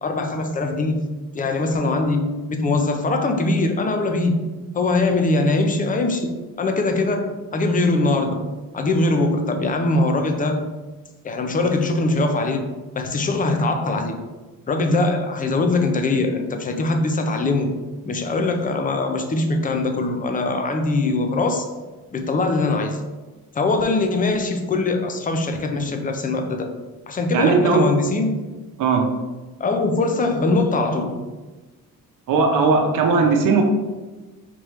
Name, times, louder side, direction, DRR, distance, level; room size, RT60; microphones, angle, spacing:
voice 1, 0.0-1.0 1.3-4.5 4.7-8.5 8.7-10.7 11.2-12.7 13.0-14.2 14.7-17.8 18.1-21.7 22.1-23.0 23.5-26.7 27.1-28.4 29.6-31.2, left 2 dB, 25° left, 5 dB, 0.6 m, -22 dB
voice 2, 27.3-27.8 28.8-29.0 32.3-33.6, right 4 dB, 70° right, 3 dB, 0.8 m, -17 dB
5.2 x 3.2 x 3.1 m, 1.2 s
cardioid pair, 105°, 32 cm